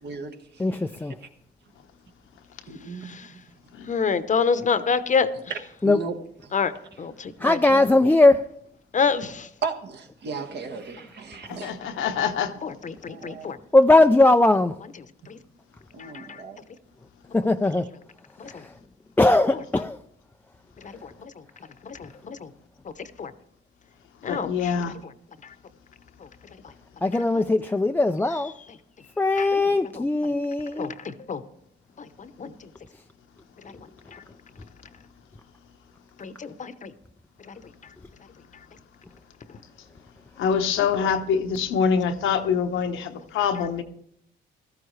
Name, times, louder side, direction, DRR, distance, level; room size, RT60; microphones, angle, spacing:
voice 1, 0.0-0.6 2.7-3.4 5.8-6.2 6.4-6.5 9.6-12.0 13.1-13.5 15.9-16.6, right 4 dB, 60° right, 1.4 m, -35 dB
voice 2, 0.6-1.2 5.8-6.0 7.4-8.4 13.7-14.8 17.3-17.9 18.4-18.7 19.2-20.0 27.0-28.5 29.2-30.9, left 2 dB, 10° left, 0.4 m, -19 dB
voice 3, 3.9-5.3 6.5-6.7 7.0-7.6 8.9-9.5 12.6-13.6 15.3-15.4 16.0-16.4 18.4-18.6 20.8-21.3 21.8-22.5 23.2-23.3 24.2-24.9 29.4-29.6 30.7-31.4 32.0-32.5 33.6-33.9 34.1-34.2 36.2-36.9 37.5-37.6, left 5 dB, 40° left, 0.8 m, -28 dB
voice 4, 11.5-12.5 24.2-24.9 40.4-43.8, left 6 dB, 85° left, 1.0 m, -25 dB
15.5 x 13.5 x 3.2 m
cardioid pair, 90°, 20 cm